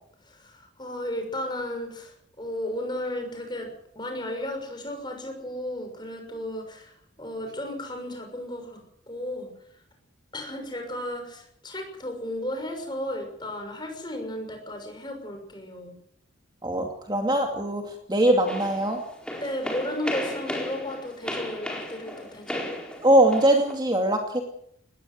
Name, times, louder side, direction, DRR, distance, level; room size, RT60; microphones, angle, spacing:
voice 1, 0.2-8.8 9.1-9.5 10.3-16.0 19.3-22.7, left 1 dB, 25° left, 4 dB, 6.4 m, -34 dB
voice 2, 16.6-19.0 23.0-24.4, right 1 dB, 20° right, 3 dB, 2.5 m, -22 dB
sound 1, 18.5-23.7, left 1 dB, 5° left, 4.3 m, -35 dB
20.0 x 17.5 x 7.9 m, 0.71 s
head